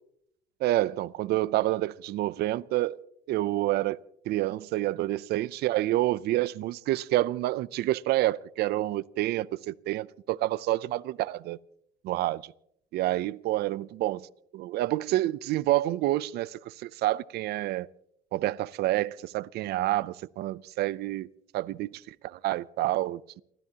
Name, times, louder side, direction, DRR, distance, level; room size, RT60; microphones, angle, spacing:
voice 1, 0.6-3.0 3.3-4.0 4.3-11.6 12.0-12.4 12.9-14.3 14.5-17.9 18.3-21.3 21.5-23.4, right 16 dB, 75° right, 0.5 m, -28 dB
29.5 x 13.0 x 2.8 m
cardioid pair, 110°, 17 cm